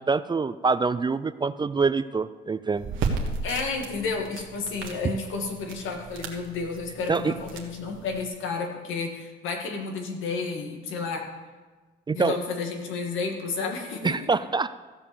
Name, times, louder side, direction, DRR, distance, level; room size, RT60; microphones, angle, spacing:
voice 1, 0.0-2.8 7.1-7.3 12.1-12.4 14.0-14.7, right 4 dB, 20° right, 14 dB, 0.4 m, -25 dB
sound 1, 2.8-8.3, right 4 dB, 85° right, 1.5 m, -35 dB
voice 2, 3.4-11.2 12.1-14.2, left 4 dB, 85° left, 3 dB, 1.9 m, -31 dB
15.0 x 5.3 x 6.9 m, 1.3 s
cardioid pair, 90°, 20 cm